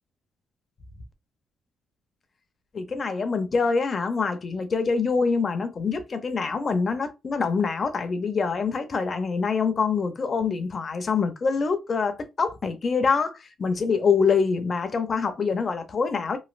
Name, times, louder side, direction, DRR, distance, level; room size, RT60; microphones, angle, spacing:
voice 1, 2.7-16.4, left 5 dB, 40° left, 0.6 m, -25 dB
3.1 x 2.5 x 2.5 m
cardioid pair, 90°, 0 cm